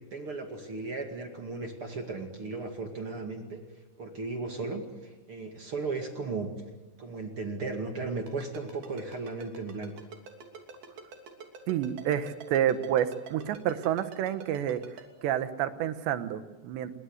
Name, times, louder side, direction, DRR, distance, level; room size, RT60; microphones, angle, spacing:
voice 1, 0.1-3.6 4.0-6.5 7.0-10.0, right 3 dB, 40° right, 4 dB, 2.4 m, -36 dB
Ringtone, 8.3-15.0, right 5 dB, 60° right, 4.7 m, -45 dB
voice 2, 11.7-14.8 15.2-17.0, right 10 dB, 75° right, 11 dB, 3.4 m, -29 dB
28.0 x 22.5 x 8.1 m, 1.2 s
omnidirectional pair, 5.1 m